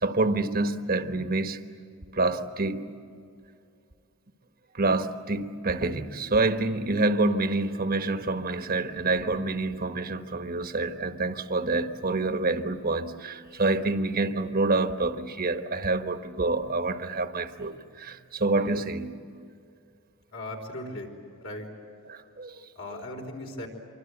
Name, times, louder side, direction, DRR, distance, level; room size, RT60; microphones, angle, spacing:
voice 1, 0.0-1.6 2.1-2.8 4.7-19.1 22.1-22.5, right 2 dB, 40° right, 1.2 m, -27 dB
voice 2, 20.3-21.2 21.4-21.7 22.7-23.7, left 1 dB, 60° left, 4.6 m, -37 dB
26.5 x 24.5 x 8.1 m
head